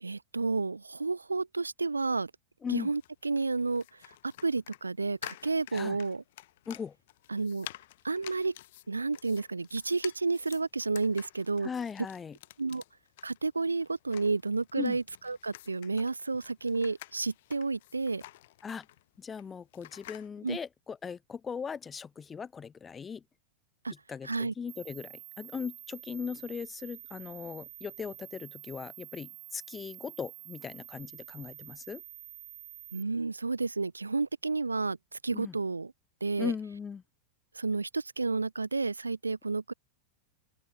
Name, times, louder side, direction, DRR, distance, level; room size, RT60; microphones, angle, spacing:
voice 1, 0.0-2.3 2.7-3.8 4.4-6.2 7.3-7.7 8.0-8.5 8.9-11.7 12.6-12.8 13.2-18.2 20.4-20.6 23.8-23.9 24.2-24.5 32.9-35.0 35.2-35.9 36.2-36.5 37.6-39.7, right 3 dB, 80° right, 0.5 m, -31 dB
voice 2, 2.6-2.9 5.7-6.0 6.7-6.9 11.6-12.4 14.7-15.0 18.6-18.9 19.2-23.2 24.1-32.0 35.3-35.6 36.4-37.0, left 6 dB, 20° left, 1.0 m, -38 dB
sound 1, 2.8-20.3, left 16 dB, 55° left, 5.9 m, -51 dB
sound 2, 24.7-33.0, right 14 dB, 35° right, 5.0 m, -48 dB
open air
figure-of-eight pair, 90°, 0 cm